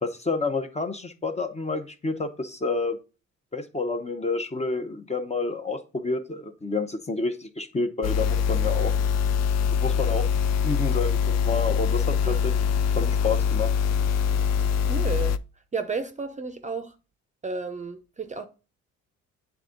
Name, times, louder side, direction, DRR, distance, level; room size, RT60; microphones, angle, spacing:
voice 1, 0.0-3.0 3.5-8.9 9.7-10.3 10.6-12.5 13.0-13.7, left 3 dB, 20° left, 0.8 m, -29 dB
sound 1, 8.0-15.4, left 7 dB, 60° left, 0.4 m, -23 dB
voice 2, 14.8-15.4 15.7-16.9 17.4-18.5, right 4 dB, 25° right, 0.6 m, -32 dB
8.1 x 3.5 x 3.8 m
cardioid pair, 90°, 30 cm